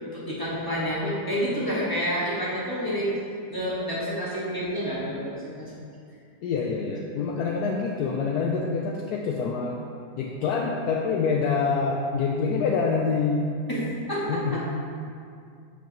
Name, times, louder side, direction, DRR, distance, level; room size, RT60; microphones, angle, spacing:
voice 1, 0.0-3.1 3.5-5.7 13.7-14.6, equal, 10° left, -8 dB, 1.3 m, -29 dB
voice 2, 6.4-9.8 10.2-13.4 14.3-14.6, left 5 dB, 75° left, 0 dB, 0.9 m, -26 dB
8.0 x 7.1 x 3.0 m, 2.4 s
omnidirectional pair, 2.1 m